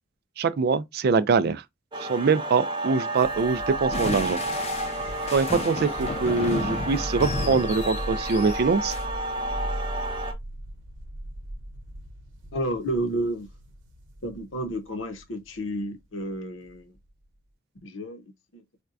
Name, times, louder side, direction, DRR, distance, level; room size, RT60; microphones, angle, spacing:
voice 1, 0.4-1.6 2.0-4.4 5.3-8.9, right 4 dB, 55° right, 0.4 m, -23 dB
sound 1, 1.9-10.3, right 2 dB, 25° right, 0.8 m, -32 dB
sound 2, 3.1-17.3, equal, 90° right, 1.0 m, -39 dB
sound 3, 3.9-9.0, left 2 dB, 30° left, 0.5 m, -33 dB
voice 2, 12.5-13.5 14.2-16.9 17.8-18.6, right 1 dB, 80° left, 0.9 m, -31 dB
4.3 x 2.2 x 2.5 m
head